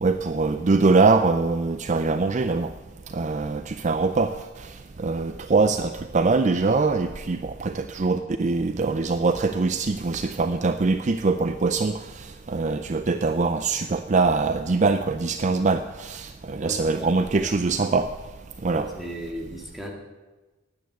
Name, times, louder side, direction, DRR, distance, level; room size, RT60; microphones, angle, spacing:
voice 1, 0.0-2.7 3.1-4.3 5.0-18.1 18.6-18.9, right 3 dB, 35° right, 10 dB, 0.5 m, -23 dB
voice 2, 16.6-17.6 18.7-19.9, right 1 dB, ahead, -1 dB, 2.1 m, -37 dB
10.5 x 9.4 x 8.0 m, 1.2 s
head